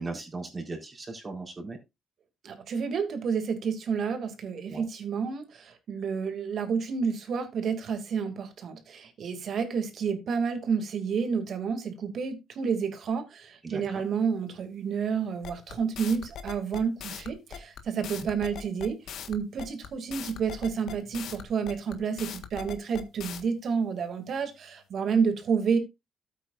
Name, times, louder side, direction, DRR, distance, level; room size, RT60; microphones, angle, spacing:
voice 1, 0.0-1.8 4.7-4.9 13.6-13.8, right 3 dB, 30° right, 1 dB, 4.0 m, -37 dB
voice 2, 2.4-19.0 19.3-25.8, right 6 dB, 60° right, 7 dB, 2.4 m, -30 dB
sound 1, 15.4-23.4, left 8 dB, 75° left, 1.5 m, -40 dB
13.0 x 8.4 x 2.5 m, 0.23 s
cardioid pair, 90°, 0 cm